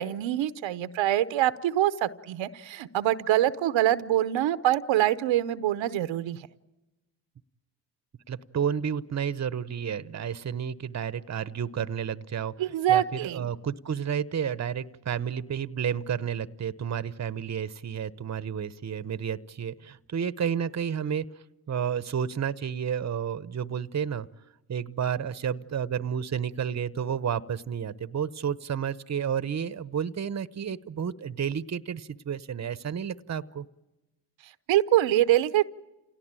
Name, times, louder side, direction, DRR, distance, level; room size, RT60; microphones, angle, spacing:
voice 1, 0.0-6.5 12.6-13.5 34.7-35.6, right 13 dB, 80° right, 13 dB, 0.8 m, -25 dB
voice 2, 8.3-12.5 12.9-21.3 21.7-24.3 24.7-33.6, right 8 dB, 35° right, 16 dB, 0.9 m, -31 dB
28.0 x 17.5 x 8.9 m, 1.0 s
supercardioid pair, 60°, 45 cm